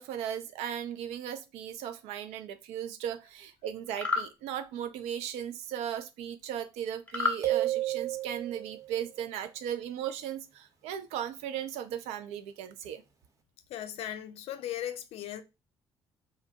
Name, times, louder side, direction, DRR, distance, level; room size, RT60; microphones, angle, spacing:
voice 1, 0.0-13.0, right 9 dB, 60° right, 0.4 m, -37 dB
sound 1, 3.9-4.3 7.1-7.4, left 4 dB, 10° left, 0.7 m, -29 dB
sound 2, 7.4-8.9, right 15 dB, 25° right, 0.6 m, -31 dB
voice 2, 13.7-15.4, left 11 dB, 55° left, 0.4 m, -37 dB
2.6 x 2.0 x 2.7 m
figure-of-eight pair, 45°, 12 cm